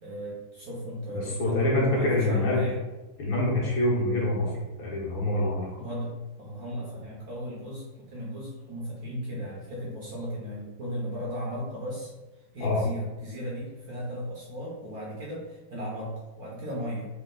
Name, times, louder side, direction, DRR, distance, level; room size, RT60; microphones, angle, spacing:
voice 1, 0.0-2.8 5.8-6.1 6.4-12.1 12.5-17.1, equal, 55° right, -5 dB, 1.2 m, -36 dB
voice 2, 1.1-2.6 3.2-4.5 4.8-5.7 12.6-12.8, left 1 dB, 70° left, -5 dB, 1.9 m, -25 dB
4.3 x 2.4 x 3.8 m, 1.1 s
omnidirectional pair, 2.2 m